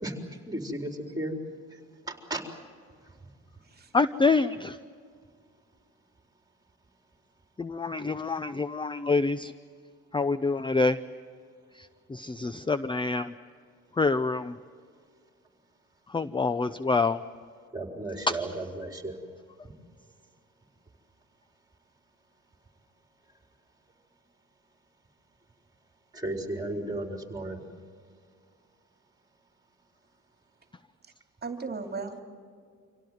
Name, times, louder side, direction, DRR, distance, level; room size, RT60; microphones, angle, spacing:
voice 1, 0.0-1.3 1.7-1.8 2.0-2.4 3.0-3.1 17.7-19.2 19.6-19.7 26.1-27.6, right 1 dB, 10° right, 4 dB, 4.3 m, -35 dB
voice 2, 3.9-4.8 7.6-9.5 10.1-11.0 11.8-13.3 13.9-14.6 16.1-17.2 18.3-18.4, left 3 dB, 15° left, 14 dB, 0.6 m, -26 dB
voice 3, 31.4-32.2, right 4 dB, 30° right, 6 dB, 2.7 m, -36 dB
26.0 x 17.0 x 9.4 m, 2.1 s
cardioid pair, 90°, 30 cm